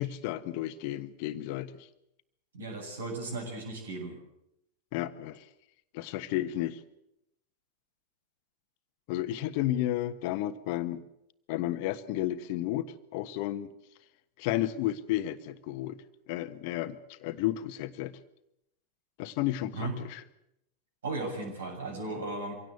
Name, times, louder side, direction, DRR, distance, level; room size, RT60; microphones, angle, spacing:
voice 1, 0.0-1.9 4.9-5.4 5.9-6.8 9.1-11.0 11.5-13.7 14.4-16.0 16.3-18.1 19.2-20.2, left 14 dB, 45° left, 12 dB, 1.3 m, -32 dB
voice 2, 2.5-4.2 19.7-19.9 21.0-22.5, right 3 dB, 65° right, 2 dB, 7.4 m, -36 dB
25.0 x 17.0 x 8.1 m, 0.82 s
figure-of-eight pair, 90°, 0 cm